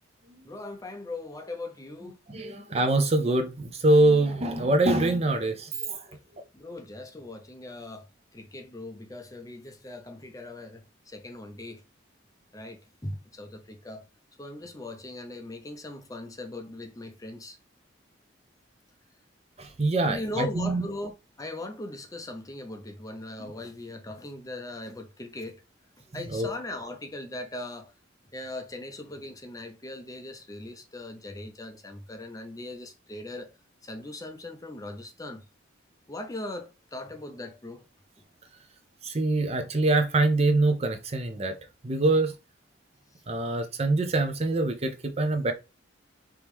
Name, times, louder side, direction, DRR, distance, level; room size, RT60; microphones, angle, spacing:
voice 1, 0.4-2.2 6.5-8.1 8.3-11.8 12.5-14.0 14.4-17.6 20.0-25.6 26.1-27.9 28.3-33.5 33.8-35.4 36.1-37.8, left 2 dB, 20° left, 0.6 m, -39 dB
voice 2, 2.3-6.0 19.6-20.8 26.3-26.5 39.0-41.5 41.8-42.3 43.3-45.5, right 2 dB, 35° right, 0.7 m, -24 dB
4.8 x 3.0 x 3.5 m
head